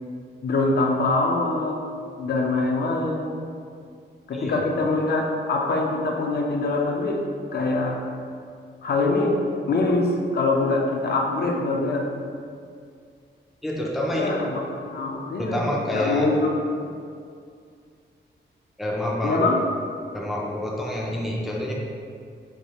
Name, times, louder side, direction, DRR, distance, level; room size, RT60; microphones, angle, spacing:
voice 1, 0.4-1.8 2.2-3.4 4.3-7.2 7.5-8.0 8.8-9.3 9.7-12.1 14.1-16.9 19.2-19.6, left 2 dB, 55° left, 0 dB, 0.5 m, -24 dB
voice 2, 4.3-4.6 13.6-14.3 15.4-16.3 18.8-19.5 20.1-21.7, left 1 dB, ahead, -3 dB, 0.4 m, -27 dB
4.6 x 2.3 x 2.9 m, 2.2 s
wide cardioid pair, 120°, 20 cm